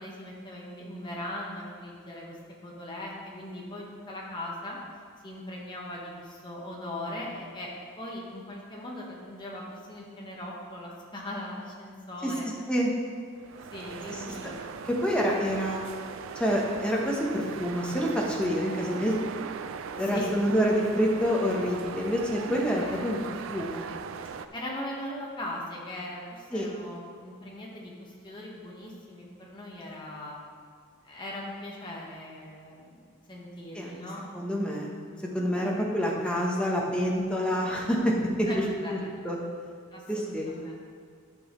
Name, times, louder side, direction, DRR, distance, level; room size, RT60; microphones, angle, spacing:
voice 1, 0.0-2.4 2.6-4.8 5.2-7.7 8.0-12.5 13.7-14.6 20.0-20.3 22.5-23.0 24.5-30.4 31.0-33.0 33.3-34.3 35.5-35.8 38.4-39.1 39.9-40.7, left 1 dB, 20° left, -3 dB, 1.3 m, -39 dB
sound 1, 13.3-24.5, right 6 dB, 60° right, 0.3 m, -39 dB
voice 2, 14.8-15.8 16.3-19.2 20.0-23.9 26.5-26.7 33.7-34.0 34.3-35.0 35.3-38.6 38.9-39.0 39.2-39.4 40.1-40.5, equal, 5° left, -2 dB, 0.9 m, -27 dB
11.0 x 6.2 x 3.1 m, 2.2 s
head